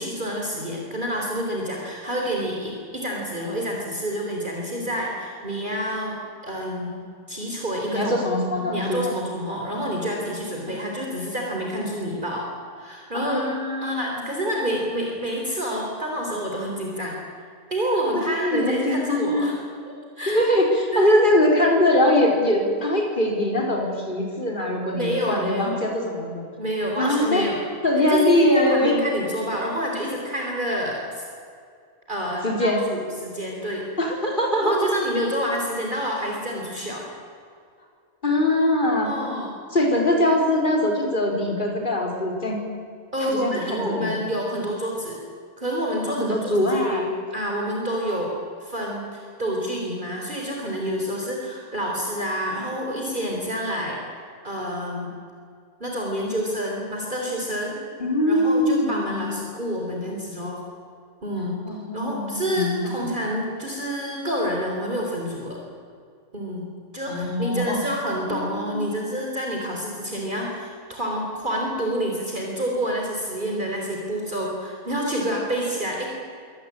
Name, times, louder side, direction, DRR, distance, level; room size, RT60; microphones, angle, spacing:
voice 1, 0.0-6.2 6.4-8.1 8.6-12.5 12.8-13.5 13.8-17.2 17.7-19.6 19.9-20.4 20.9-21.2 24.9-25.8 26.6-27.6 28.1-31.2 32.1-33.9 34.6-37.1 39.0-39.5 43.1-45.2 45.6-48.3 48.6-54.0 54.4-55.1 55.8-57.8 58.3-60.6 61.2-61.6 61.9-65.6 66.3-66.7 66.9-76.1, equal, 35° right, -1 dB, 3.9 m, -28 dB
voice 2, 7.9-9.2 10.7-10.8 13.1-14.3 18.1-19.5 20.3-26.4 27.0-27.5 27.8-28.9 32.4-32.8 34.0-34.8 38.2-39.1 39.7-42.6 43.2-44.1 46.1-47.0 58.0-59.4 61.6-63.0 67.1-67.8 68.3-68.8, left 1 dB, 35° left, 1 dB, 4.8 m, -22 dB
24.5 x 18.0 x 8.7 m, 2.2 s
omnidirectional pair, 1.4 m